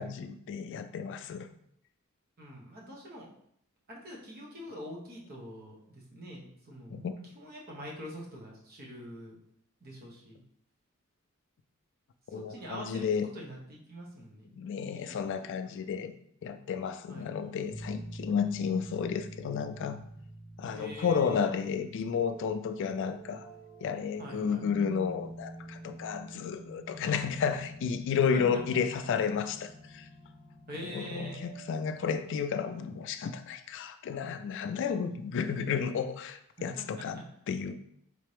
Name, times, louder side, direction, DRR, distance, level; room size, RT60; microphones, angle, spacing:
voice 1, 0.0-1.5 6.9-7.1 12.3-13.3 14.5-16.1 16.4-20.0 20.6-23.5 23.8-30.1 30.9-37.2 37.5-37.7, left 6 dB, 60° left, 10 dB, 0.3 m, -32 dB
voice 2, 2.4-3.3 3.9-7.1 7.3-9.4 9.8-10.4 12.3-13.1 13.3-14.4 14.9-15.8 17.1-17.3 20.7-21.5 24.2-24.7 28.3-28.6 30.7-31.4 36.8-37.2, equal, 45° right, -3 dB, 1.2 m, -44 dB
sound 1, 17.7-32.4, right 1 dB, 10° right, 1.4 m, -47 dB
4.2 x 3.3 x 3.3 m, 0.70 s
head